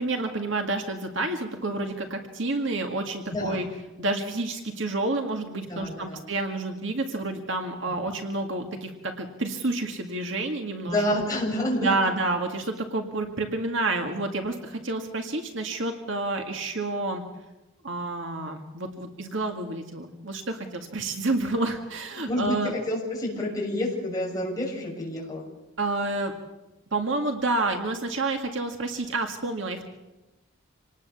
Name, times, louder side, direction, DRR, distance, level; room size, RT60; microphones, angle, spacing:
voice 1, 0.0-3.7 4.0-11.0 11.8-17.2 17.8-22.7 25.8-26.3 26.9-29.8, right 2 dB, 65° right, 4 dB, 2.0 m, -29 dB
voice 2, 3.3-3.6 5.7-6.2 7.9-8.0 10.8-12.0 22.2-25.5, left 1 dB, 15° left, -3 dB, 6.6 m, -29 dB
26.5 x 19.0 x 7.1 m, 1.0 s
head